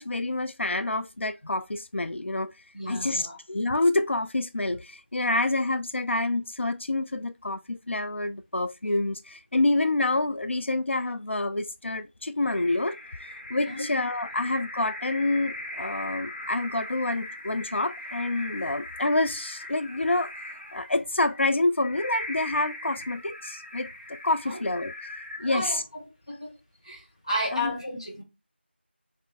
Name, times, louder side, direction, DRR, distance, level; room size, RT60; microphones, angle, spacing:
voice 1, 0.0-2.5 2.9-20.3 20.7-25.1 25.4-25.8 27.5-27.7, left 2 dB, 90° left, 0.3 m, -27 dB
voice 2, 2.7-3.4 13.5-13.9 14.4-14.5 24.5-24.6 25.4-26.5 26.8-28.2, left 1 dB, 30° left, 1.2 m, -33 dB
sound 1, 12.5-26.0, left 1 dB, 65° left, 1.4 m, -40 dB
3.5 x 2.5 x 3.9 m
figure-of-eight pair, 175°, 6 cm